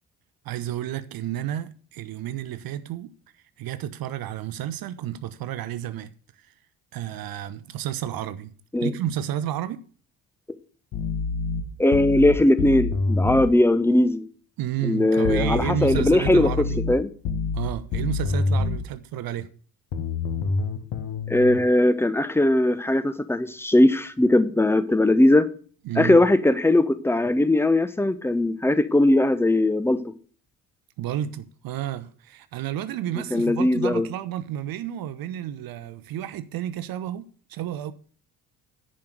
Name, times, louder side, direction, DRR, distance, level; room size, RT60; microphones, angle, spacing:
voice 1, 0.4-3.1 3.6-6.1 6.4-6.5 6.9-8.5 8.8-9.8 14.6-16.8 17.5-19.5 25.8-26.2 31.0-37.9, right 11 dB, 50° right, 0.9 m, -31 dB
sound 1, 10.9-13.5 15.2-18.9 19.9-21.6, left 4 dB, 55° left, 1.4 m, -27 dB
voice 2, 11.8-14.2 14.8-16.5 16.9-17.1 21.3-25.5 26.0-30.0 33.3-34.1, left 1 dB, 5° left, 0.9 m, -19 dB
10.5 x 5.1 x 7.9 m
figure-of-eight pair, 45°, 46 cm